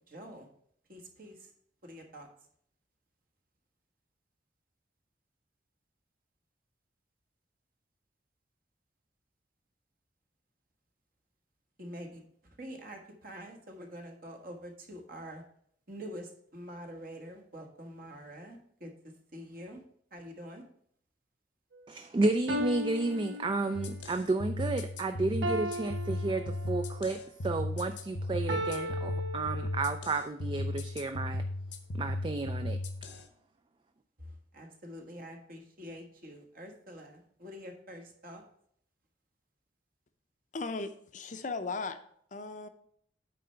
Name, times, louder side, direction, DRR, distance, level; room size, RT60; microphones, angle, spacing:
voice 1, 0.1-0.4 0.9-1.3 1.9-2.3 11.8-12.2 12.6-13.0 13.2-15.4 15.9-16.2 16.5-18.6 18.8-18.9 19.3-19.8 20.1-20.6 34.5-38.4, equal, 50° right, 2 dB, 1.5 m, -45 dB
sound 1, 21.7-21.8 22.5-24.1 25.4-27.1 28.5-30.1, equal, 90° right, 1.0 m, -37 dB
voice 2, 21.9-31.4 31.9-32.8, right 3 dB, 25° right, 9 dB, 0.3 m, -32 dB
sound 2, 23.7-33.2, left 1 dB, 80° left, 0.9 m, -36 dB
voice 3, 40.5-42.0 42.3-42.7, left 3 dB, 45° left, 9 dB, 0.6 m, -37 dB
8.7 x 3.4 x 6.6 m, 0.65 s
head